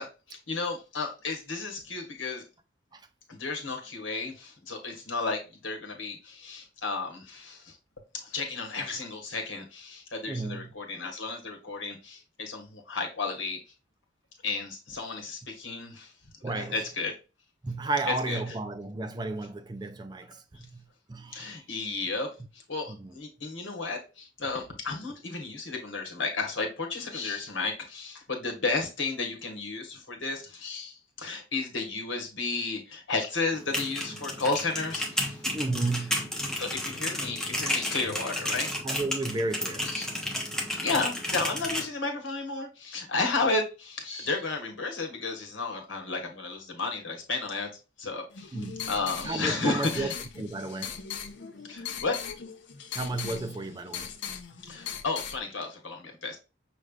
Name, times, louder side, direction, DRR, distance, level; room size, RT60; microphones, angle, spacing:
voice 1, 0.0-2.4 3.3-7.7 8.1-13.6 14.4-16.1 16.4-17.1 18.1-18.5 21.3-22.3 22.7-35.4 36.6-38.7 39.8-40.0 40.8-47.7 48.0-48.6 48.9-50.1 51.7-52.2 54.6-56.4, left 3 dB, 90° left, 1.4 m, -33 dB
voice 2, 10.3-10.7 16.4-16.8 17.6-20.8 21.1-21.6 23.0-23.1 35.5-36.3 38.8-39.9 48.5-48.9 49.2-50.1 50.4-51.0 52.9-54.1, right 2 dB, 20° right, 0.4 m, -33 dB
sound 1, 33.5-41.9, left 1 dB, 5° left, 0.8 m, -32 dB
sound 2, 48.3-55.4, left 7 dB, 70° left, 0.7 m, -39 dB
5.9 x 3.3 x 2.4 m
head